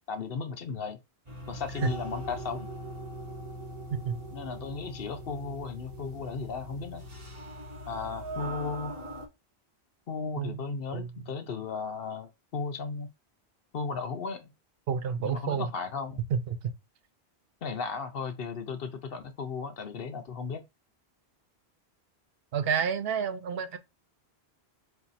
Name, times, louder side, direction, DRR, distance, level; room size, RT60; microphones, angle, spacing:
voice 1, 0.1-1.0 1.5-2.7 4.3-7.0 7.9-8.9 10.1-13.1 13.7-14.5 15.2-16.2 17.6-20.6, left 5 dB, 60° left, 0.9 m, -35 dB
sound 1, 1.3-9.3, right 1 dB, 30° right, 1.2 m, -41 dB
voice 2, 14.9-15.7 16.3-16.6 22.5-23.8, right 7 dB, 65° right, 0.8 m, -29 dB
4.4 x 2.6 x 4.0 m
omnidirectional pair, 1.1 m